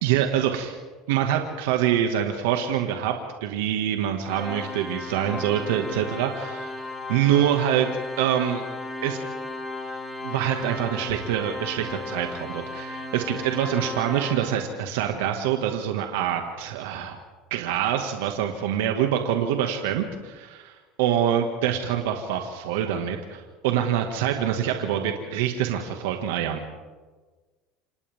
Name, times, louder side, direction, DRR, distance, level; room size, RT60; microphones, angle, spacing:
voice 1, 0.0-0.8 1.1-3.1 3.4-6.7 7.1-7.9 8.2-8.6 9.0-9.2 10.2-17.2 17.5-26.6, right 10 dB, 80° right, 4 dB, 2.0 m, -25 dB
Organ, 4.3-15.0, left 2 dB, 10° left, 4.0 m, -35 dB
28.5 x 27.5 x 3.7 m, 1.3 s
supercardioid pair, 90°, 0 cm